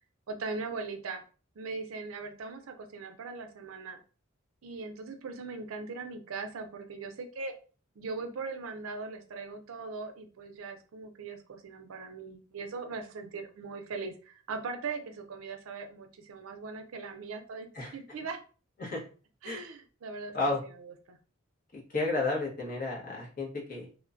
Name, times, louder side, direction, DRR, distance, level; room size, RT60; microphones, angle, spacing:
voice 1, 0.3-1.2 1.6-4.0 4.6-7.5 8.0-18.4 19.4-20.4 20.8-21.2, right 4 dB, 85° right, 6 dB, 0.5 m, -40 dB
voice 2, 21.7-24.0, left 2 dB, 45° left, -3 dB, 1.0 m, -32 dB
3.0 x 2.1 x 2.5 m, 0.37 s
head